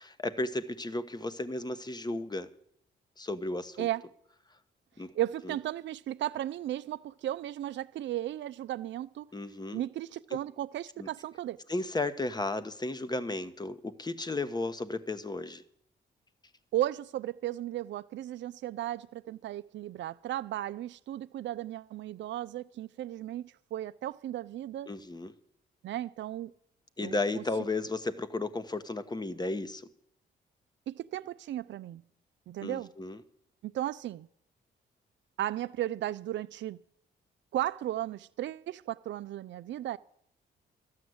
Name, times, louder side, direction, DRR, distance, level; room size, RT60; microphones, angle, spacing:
voice 1, 0.0-2.5 3.2-3.9 5.0-5.1 5.4-5.6 9.3-9.8 11.0-11.1 11.7-15.6 24.9-25.3 27.0-29.9 32.6-33.2, left 2 dB, 20° left, 1.1 m, -34 dB
voice 2, 5.1-9.3 9.7-11.6 16.7-24.9 25.8-26.5 27.0-27.4 30.9-32.0 32.5-32.9 33.6-34.3 35.4-36.8 37.5-40.0, right 13 dB, 70° right, 0.5 m, -35 dB
13.0 x 9.3 x 7.9 m
cardioid pair, 65°, 20 cm